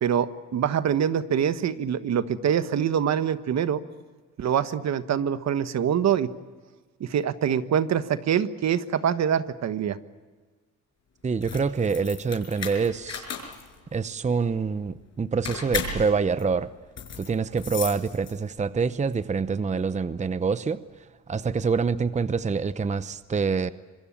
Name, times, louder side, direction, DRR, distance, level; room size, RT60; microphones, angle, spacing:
voice 1, 0.0-3.8 4.4-6.3 7.0-10.0, right 8 dB, 60° right, 11 dB, 1.4 m, -25 dB
voice 2, 11.2-13.3 13.9-16.7 17.2-20.8 21.3-23.7, right 5 dB, 25° right, 13 dB, 0.8 m, -26 dB
sound 1, 11.3-18.7, left 6 dB, 60° left, 5.8 m, -36 dB
26.0 x 22.0 x 8.7 m, 1.4 s
cardioid pair, 90°, 30 cm